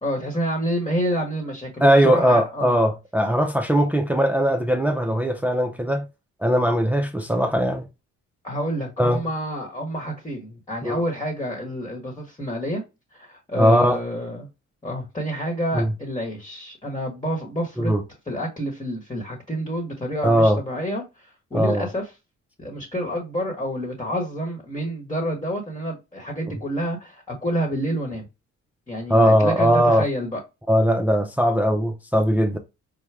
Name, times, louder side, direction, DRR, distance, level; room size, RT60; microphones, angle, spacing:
voice 1, 0.0-2.8 8.4-12.8 13.1-14.5 14.8-17.9 18.3-22.1 22.6-28.3 28.9-30.4, equal, 15° left, 1.3 m, -28 dB
voice 2, 1.8-6.1 6.4-7.9 9.0-9.2 10.8-11.0 13.6-14.0 15.7-15.9 17.8-18.0 20.2-20.6 21.5-21.9 29.1-30.1 30.7-32.6, equal, 5° right, 0.5 m, -19 dB
4.6 x 2.2 x 3.3 m
cardioid pair, 90°, 30 cm